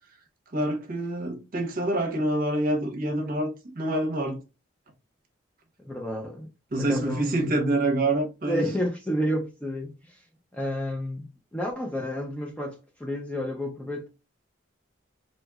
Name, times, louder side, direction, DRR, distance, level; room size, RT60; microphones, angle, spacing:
voice 1, 0.5-3.5 3.7-4.4 6.7-8.6, right 1 dB, 45° right, 0.7 m, -26 dB
voice 2, 5.8-6.5 6.8-7.4 8.5-10.2 10.5-14.1, equal, 5° left, 0.3 m, -31 dB
2.8 x 2.8 x 2.3 m
head